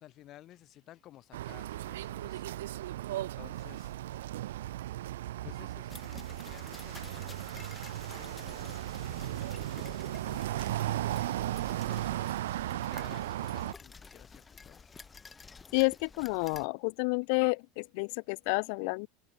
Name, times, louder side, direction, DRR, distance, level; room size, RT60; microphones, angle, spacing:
voice 1, 0.0-2.4 2.7-4.0 5.4-8.7 9.0-10.0 10.7-12.4 12.7-15.0, left 14 dB, 45° left, 7.4 m, -56 dB
sound 1, 1.3-13.7, right 14 dB, 90° right, 0.4 m, -36 dB
sound 2, 5.9-16.7, left 5 dB, 20° left, 7.3 m, -51 dB
voice 2, 15.7-19.1, left 35 dB, 65° left, 0.6 m, -30 dB
open air
supercardioid pair, 120°, 0 cm